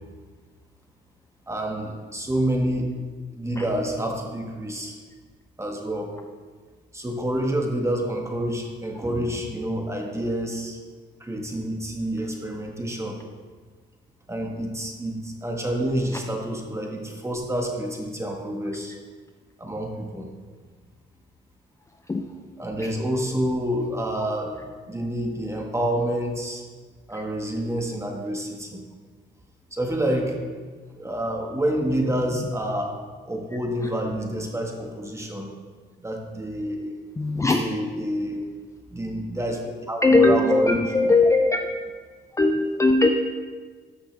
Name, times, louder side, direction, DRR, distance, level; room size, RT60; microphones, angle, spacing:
voice 1, 1.5-2.9 3.4-5.0 5.6-6.1 6.9-10.8 11.2-13.2 14.3-18.9 19.6-20.3 22.6-24.6 24.9-26.6 27.1-28.8 29.7-30.4 30.9-32.9 33.3-35.5 36.0-36.9 37.4-38.5 38.9-40.8, right 1 dB, 15° right, 1 dB, 1.6 m, -28 dB
voice 2, 37.2-37.6 40.0-41.7 42.3-43.1, left 2 dB, 15° left, 4 dB, 0.5 m, -19 dB
13.5 x 5.8 x 3.4 m, 1.5 s
cardioid pair, 90°, 20 cm